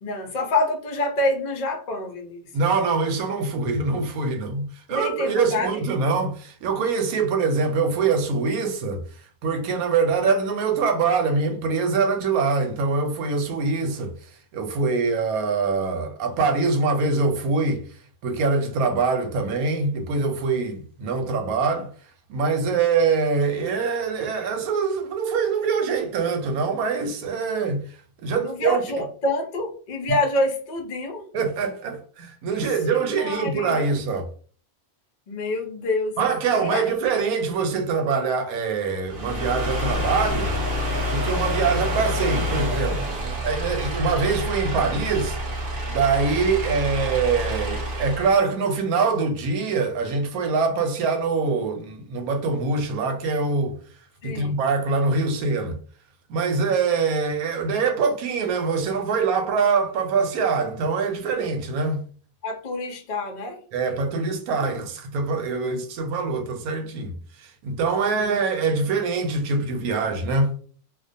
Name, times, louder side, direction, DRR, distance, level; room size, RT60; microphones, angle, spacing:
voice 1, 0.0-2.4 4.9-5.8 28.4-31.3 32.5-33.9 35.3-36.2 36.5-36.9 54.2-54.6 62.4-63.6 68.1-68.4, left 1 dB, 70° left, 0.4 m, -27 dB
voice 2, 2.5-9.0 9.4-14.1 14.5-17.9 18.2-21.9 22.3-27.8 28.2-28.8 31.3-34.3 36.2-40.6 41.1-45.4 45.9-53.8 54.2-55.8 56.3-62.0 63.7-70.5, right 4 dB, 80° right, 1.0 m, -24 dB
sound 1, 39.0-48.4, left 1 dB, 50° right, 0.7 m, -27 dB
2.4 x 2.2 x 2.5 m
omnidirectional pair, 1.5 m